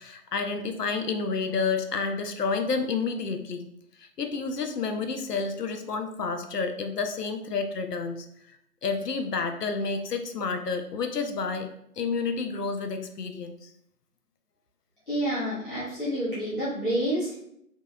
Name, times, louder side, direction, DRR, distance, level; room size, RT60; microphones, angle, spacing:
voice 1, 0.0-3.7 4.0-8.3 8.8-11.7 12.0-13.7, left 4 dB, 85° left, 6 dB, 0.6 m, -30 dB
voice 2, 15.1-17.4, right 1 dB, 35° left, -11 dB, 0.9 m, -28 dB
2.9 x 2.7 x 2.3 m, 0.73 s
figure-of-eight pair, 160°, 46 cm